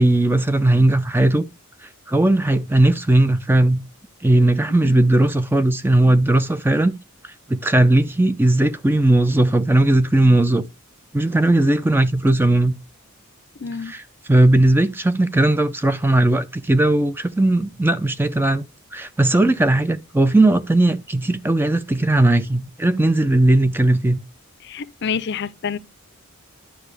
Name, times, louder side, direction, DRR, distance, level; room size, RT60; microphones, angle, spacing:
voice 1, 0.0-1.5 2.1-3.8 4.2-6.9 7.5-10.6 11.1-12.7 13.9-14.0 14.3-18.6 18.9-24.2, right 1 dB, 10° right, 0.4 m, -17 dB
voice 2, 13.6-13.9 24.6-25.8, left 6 dB, 50° left, 0.5 m, -28 dB
10.5 x 6.0 x 3.3 m
head